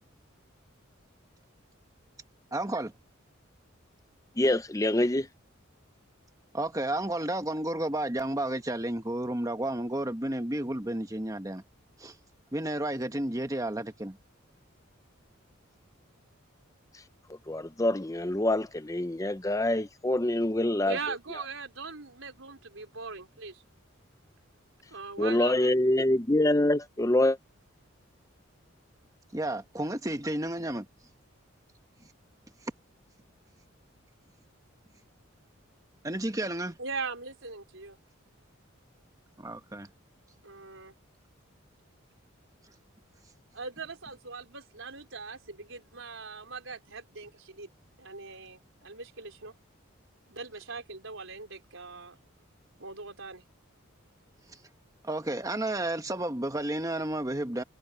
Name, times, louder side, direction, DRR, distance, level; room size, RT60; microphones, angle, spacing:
voice 1, 2.5-2.9 6.5-11.6 12.0-12.1 12.5-14.2 29.3-30.9 36.0-36.8 39.4-39.9 55.0-57.6, right 1 dB, 15° right, 1.3 m, -32 dB
voice 2, 4.4-5.3 17.5-21.0 25.2-27.4, left 1 dB, 15° left, 0.6 m, -25 dB
voice 3, 20.8-23.6 24.9-25.7 36.8-38.0 40.4-40.9 43.5-47.7 48.0-49.5 50.3-52.2 52.8-53.4, right 4 dB, 70° right, 4.5 m, -40 dB
head